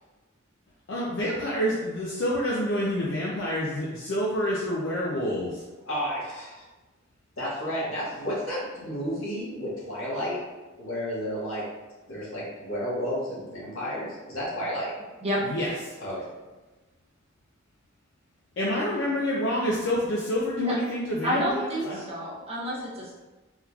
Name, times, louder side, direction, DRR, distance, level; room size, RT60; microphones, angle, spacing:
voice 1, 0.9-5.6 15.4-16.0 18.6-22.0, equal, 60° left, -5 dB, 0.5 m, -28 dB
voice 2, 5.8-6.6 7.4-10.4 10.8-11.7 12.1-14.9 16.0-16.3, equal, 85° left, -7 dB, 1.3 m, -32 dB
voice 3, 21.2-23.1, equal, 30° right, -5 dB, 0.7 m, -29 dB
3.5 x 2.9 x 2.3 m, 1.2 s
head